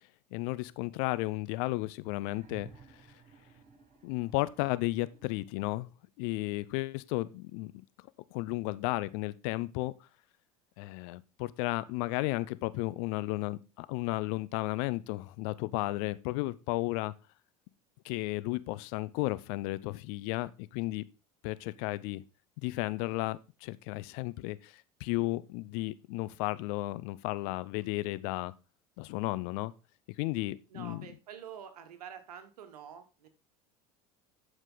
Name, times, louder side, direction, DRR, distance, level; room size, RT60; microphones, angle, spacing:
voice 1, 0.3-2.7 4.0-5.9 6.2-7.7 8.3-9.9 10.8-17.1 18.0-21.0 21.4-22.2 22.6-28.5 29.0-29.7 30.2-31.1, left 20 dB, 65° left, 0.6 m, -33 dB
sound 1, 2.1-6.0 7.2-7.3, right 6 dB, 40° right, 5.9 m, -57 dB
voice 2, 30.7-33.3, right 8 dB, 85° right, 1.4 m, -47 dB
11.5 x 5.1 x 3.9 m
hypercardioid pair, 80°, 20 cm